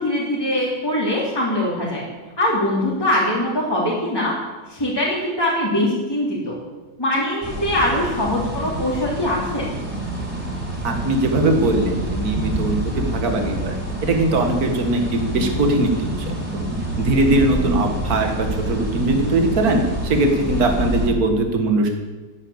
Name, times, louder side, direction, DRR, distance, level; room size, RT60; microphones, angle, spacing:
voice 1, 0.0-2.0 2.4-4.3 4.7-6.6 7.0-9.8, left 1 dB, 15° left, -5 dB, 3.1 m, -22 dB
sound 1, 7.4-21.1, right 1 dB, 5° right, 3.8 m, -27 dB
voice 2, 10.8-16.2 16.5-16.6 17.0-21.9, right 2 dB, 60° right, 4 dB, 2.2 m, -20 dB
12.5 x 10.0 x 8.7 m, 1.2 s
omnidirectional pair, 1.8 m